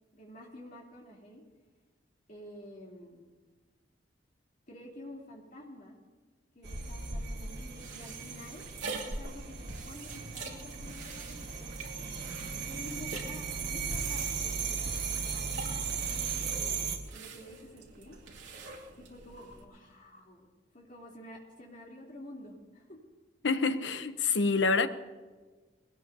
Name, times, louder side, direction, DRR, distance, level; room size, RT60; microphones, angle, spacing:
voice 1, 0.1-1.4 2.3-3.2 4.7-6.0 6.5-8.6 9.0-11.7 12.5-13.5 13.7-16.8 17.1-18.2 18.9-20.5 20.7-23.0, left 1 dB, 45° left, 3.3 m, -50 dB
sound 1, 6.6-17.0, right 5 dB, 60° right, 1.7 m, -37 dB
sound 2, 7.6-19.6, right 3 dB, 80° right, 2.5 m, -45 dB
voice 2, 23.4-24.9, left 4 dB, 75° left, 0.8 m, -27 dB
21.5 x 18.0 x 2.8 m
head